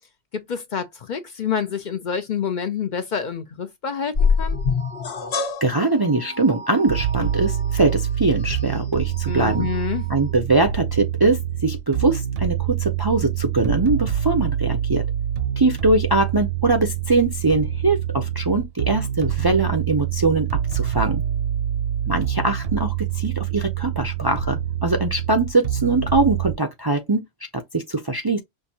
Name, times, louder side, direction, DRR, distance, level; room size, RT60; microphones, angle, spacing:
voice 1, 0.3-4.6 9.3-10.0, left 7 dB, 55° left, 0.6 m, -27 dB
sound 1, 4.1-10.3, left 5 dB, 75° left, 1.2 m, -27 dB
voice 2, 5.6-9.7 10.1-15.0 15.6-21.2 22.1-27.2 27.5-28.4, right 2 dB, 30° right, 0.5 m, -22 dB
sound 2, 6.9-26.5, right 10 dB, 65° right, 1.0 m, -26 dB
5.7 x 2.6 x 2.7 m
omnidirectional pair, 1.1 m